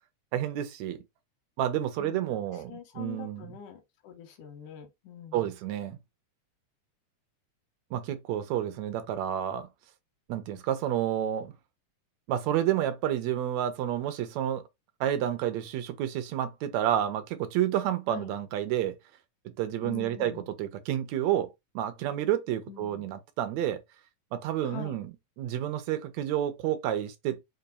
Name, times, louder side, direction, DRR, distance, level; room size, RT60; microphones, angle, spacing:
voice 1, 0.3-1.0 1.6-3.5 5.3-6.0 7.9-9.7 10.3-11.5 12.3-14.6 15.0-19.0 19.6-20.3 20.6-21.5 21.8-23.8 24.3-25.1 25.4-27.4, right 11 dB, 75° right, 1.7 m, -30 dB
voice 2, 2.7-5.5 18.1-18.3 19.8-20.5 22.7-23.1 24.6-25.0, left 9 dB, 85° left, 2.5 m, -44 dB
5.3 x 2.2 x 3.9 m
omnidirectional pair, 3.6 m